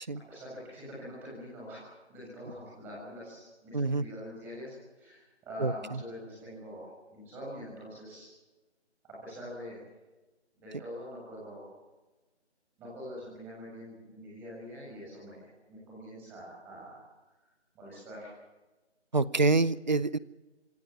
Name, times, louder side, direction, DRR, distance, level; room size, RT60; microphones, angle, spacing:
voice 1, 0.3-8.3 9.0-9.8 10.5-11.7 12.8-17.0 17.7-18.3, equal, 5° right, -6 dB, 7.3 m, -44 dB
voice 2, 3.7-4.0 5.6-5.7 19.1-20.2, right 3 dB, 40° right, 19 dB, 0.7 m, -26 dB
27.0 x 20.0 x 7.1 m, 1.1 s
figure-of-eight pair, 165°, 35 cm